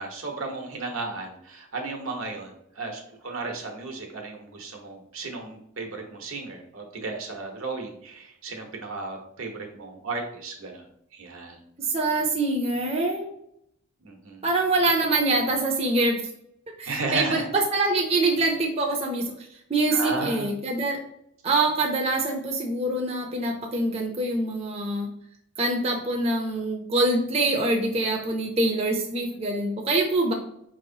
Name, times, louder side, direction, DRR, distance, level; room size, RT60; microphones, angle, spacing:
voice 1, 0.0-10.9 11.1-11.6 14.0-14.5 16.9-17.5 19.9-20.5, right 3 dB, 80° right, 2 dB, 0.9 m, -34 dB
voice 2, 11.8-13.3 14.4-16.2 16.8-21.0 21.4-25.1 25.6-30.3, right 2 dB, 30° right, 1 dB, 0.5 m, -25 dB
5.1 x 3.0 x 2.7 m, 0.74 s
head